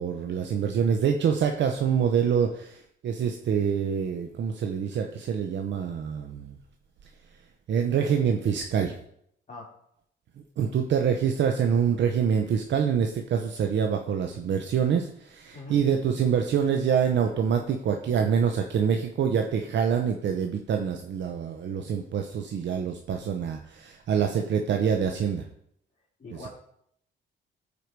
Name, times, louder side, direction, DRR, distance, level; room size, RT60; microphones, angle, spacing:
voice 1, 0.0-6.6 7.7-8.9 10.6-25.4, right 7 dB, 65° right, 4 dB, 0.9 m, -26 dB
voice 2, 9.5-9.7 15.5-15.8 26.2-26.5, left 2 dB, 40° left, -7 dB, 3.5 m, -41 dB
13.5 x 5.0 x 4.7 m, 0.71 s
cardioid pair, 90°, 20 cm